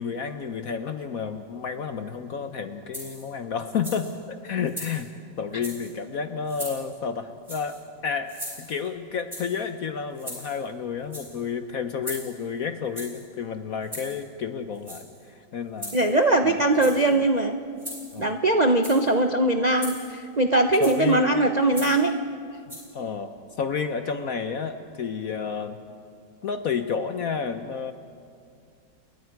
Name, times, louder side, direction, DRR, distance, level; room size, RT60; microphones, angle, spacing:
voice 1, 0.0-8.3 8.6-15.9 16.4-17.2 18.1-18.3 20.8-21.3 22.7-25.8 26.4-27.9, left 6 dB, 60° left, 9 dB, 1.0 m, -31 dB
sound 1, 2.9-3.3 3.7-4.2 4.6-5.1 5.5-5.9 6.5-6.9 7.4-7.8 8.3-8.9 9.3-9.6 10.2-10.7 11.0-11.4 12.0-12.5 13.0-13.3 13.8-14.2 14.8-15.2 15.8-16.3 16.7-17.1 17.8-18.2 18.7-19.1 19.8-20.2 20.8-21.1 21.7-22.1 22.7-22.8, equal, 10° right, 5.4 m, -39 dB
voice 2, 15.9-17.5 18.2-22.1, right 2 dB, 80° right, 6 dB, 0.3 m, -21 dB
29.0 x 21.5 x 4.7 m, 2.3 s
omnidirectional pair, 2.2 m